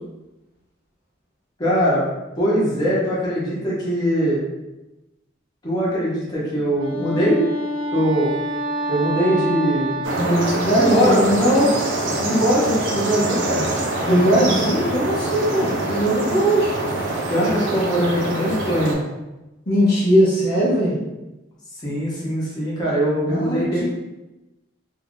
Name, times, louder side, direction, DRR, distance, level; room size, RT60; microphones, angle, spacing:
voice 1, 1.6-2.0 2.4-4.4 5.6-7.4 7.9-8.3 8.9-10.0 10.8-11.7 12.2-13.7 17.3-19.0 21.8-23.9, equal, 20° left, -7 dB, 0.9 m, -21 dB
Wind instrument woodwind instrument, 6.6-11.3, right 1 dB, 25° right, 0.8 m, -27 dB
sound 1, 10.0-18.9, right 2 dB, 70° right, 0.6 m, -25 dB
voice 2, 10.2-11.6 14.0-16.7 19.7-21.0 23.3-23.9, right 1 dB, 50° left, -6 dB, 0.7 m, -19 dB
2.7 x 2.4 x 3.7 m, 1.0 s
head